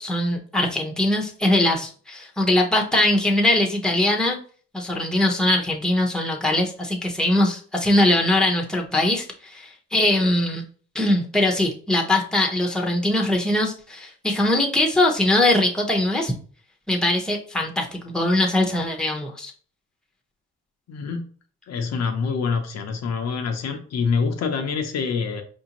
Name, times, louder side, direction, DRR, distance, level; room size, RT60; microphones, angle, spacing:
voice 1, 0.0-4.4 4.7-10.6 10.9-16.3 16.9-19.5, left 1 dB, ahead, 0 dB, 0.9 m, -21 dB
voice 2, 20.9-21.2 21.7-25.4, left 5 dB, 60° left, 5 dB, 0.7 m, -26 dB
4.8 x 2.6 x 2.9 m, 0.42 s
cardioid pair, 90°, 30 cm